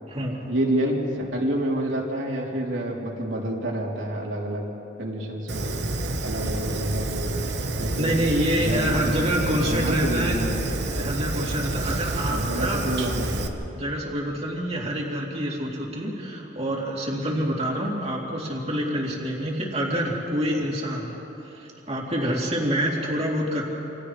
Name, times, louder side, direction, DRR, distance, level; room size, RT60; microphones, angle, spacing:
voice 1, 0.5-4.6 5.0-5.8 6.2-7.4 7.8-8.2 8.5-10.6 11.9-13.5, right 1 dB, 75° right, -3 dB, 3.5 m, -28 dB
Fire, 5.5-13.5, right 2 dB, 60° right, 1.2 m, -29 dB
voice 2, 8.0-10.4 10.9-12.8 13.7-21.1 21.4-23.6, equal, 35° right, -3 dB, 3.3 m, -27 dB
29.0 x 27.0 x 3.3 m, 3.0 s
head